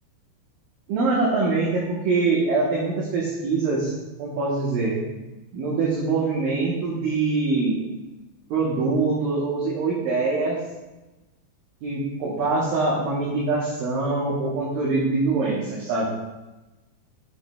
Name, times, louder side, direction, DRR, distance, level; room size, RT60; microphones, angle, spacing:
voice 1, 0.9-3.9 4.2-5.0 5.5-7.8 8.5-10.6 11.8-16.0, right 3 dB, 70° right, -6 dB, 2.3 m, -24 dB
8.1 x 6.6 x 2.2 m, 1.1 s
omnidirectional pair, 5.1 m